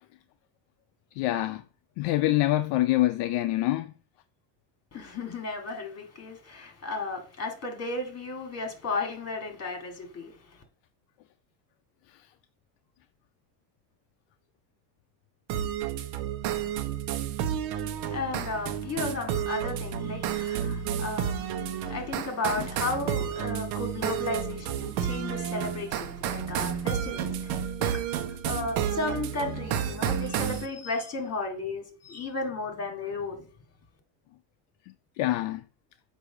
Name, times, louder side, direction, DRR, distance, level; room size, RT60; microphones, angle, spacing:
voice 1, 1.1-1.6 2.0-3.9 12.1-12.3 22.6-22.7 34.9-35.7, left 16 dB, 65° left, 0.6 m, -26 dB
voice 2, 4.9-10.3 18.0-27.9 28.3-33.4, left 3 dB, 30° left, 2.2 m, -34 dB
sound 1, 15.5-30.7, right 9 dB, 85° right, 1.0 m, -31 dB
8.0 x 2.8 x 6.0 m
cardioid pair, 125°, 48 cm